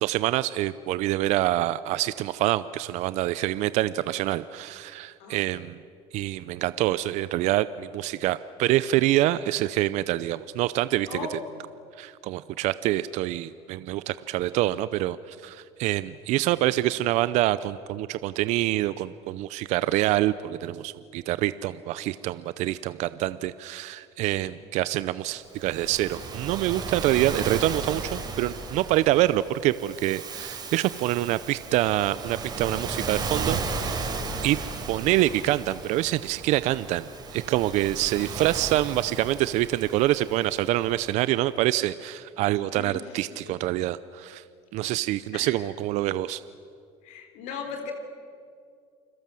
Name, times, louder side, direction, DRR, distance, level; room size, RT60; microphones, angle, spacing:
voice 1, 0.0-5.8 6.1-11.2 12.0-34.1 34.4-34.6 34.9-44.4 44.7-46.4, right 15 dB, 60° right, 15 dB, 0.7 m, -26 dB
voice 2, 11.1-11.6 24.3-24.5 42.7-43.6 44.8-44.9 45.3-45.7 47.0-47.9, left 5 dB, 70° left, 5 dB, 3.5 m, -38 dB
Waves surf, 25.5-41.0, right 4 dB, 30° right, 4.3 m, -35 dB
29.0 x 21.5 x 7.7 m, 2.3 s
supercardioid pair, 105°, 13 cm